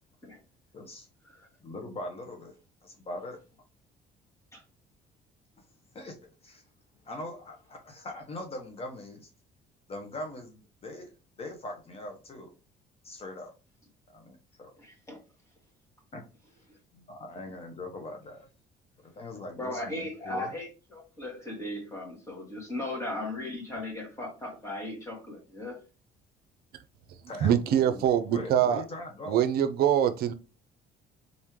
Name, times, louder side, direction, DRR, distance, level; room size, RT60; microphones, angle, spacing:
voice 1, 0.7-1.1 1.6-2.6 2.8-3.4 5.9-6.2 6.4-6.6 7.0-9.3 9.9-12.5 13.0-13.5 14.1-14.7 16.1-16.2 16.9-18.5 19.0-20.5 27.3-29.4, left 1 dB, 35° left, 0.9 m, -41 dB
voice 2, 14.8-15.2 19.6-25.8, left 2 dB, 15° left, 2.3 m, -37 dB
voice 3, 27.4-28.8 29.3-30.3, right 10 dB, 65° right, 0.5 m, -24 dB
4.0 x 3.6 x 3.0 m
cardioid pair, 110°, 17 cm